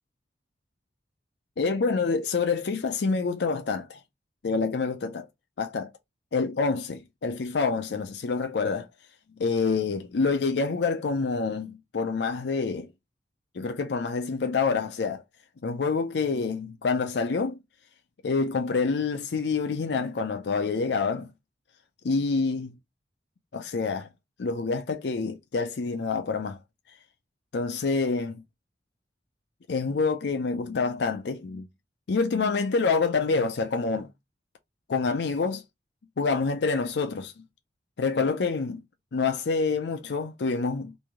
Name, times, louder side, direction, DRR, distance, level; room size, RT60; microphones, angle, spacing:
voice 1, 1.6-4.0 4.4-5.3 5.6-5.9 6.3-8.9 9.4-12.9 13.5-15.2 15.6-17.6 18.2-21.3 22.0-22.7 23.5-24.1 24.4-26.6 27.5-28.4 29.7-31.7 32.1-34.1 34.9-35.6 36.2-37.3 38.0-38.8 39.1-40.9, left 4 dB, 70° left, 0.5 m, -27 dB
3.1 x 2.6 x 3.5 m
head